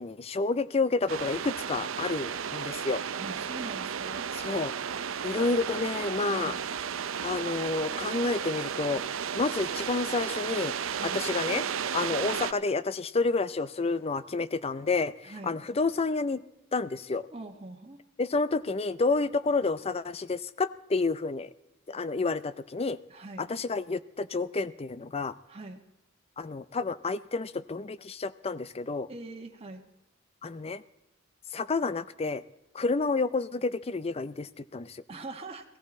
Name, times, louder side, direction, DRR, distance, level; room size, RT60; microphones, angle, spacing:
voice 1, 0.0-3.0 4.3-4.7 5.2-6.5 7.2-9.0 9.3-10.7 11.0-11.6 11.9-16.4 16.7-17.3 18.2-21.5 21.9-23.0 23.4-25.3 26.4-29.1 30.4-30.8 31.5-32.4 32.7-35.0, left 3 dB, 30° left, 15 dB, 0.5 m, -29 dB
sound 1, 1.1-12.5, right 7 dB, 90° right, 0.6 m, -33 dB
voice 2, 3.2-4.2 6.3-6.6 10.9-11.2 15.2-15.6 17.3-18.0 23.1-23.5 25.5-25.8 29.1-29.8 35.1-35.6, right 2 dB, 30° right, 1 dB, 1.3 m, -42 dB
18.0 x 14.5 x 4.2 m, 0.94 s
head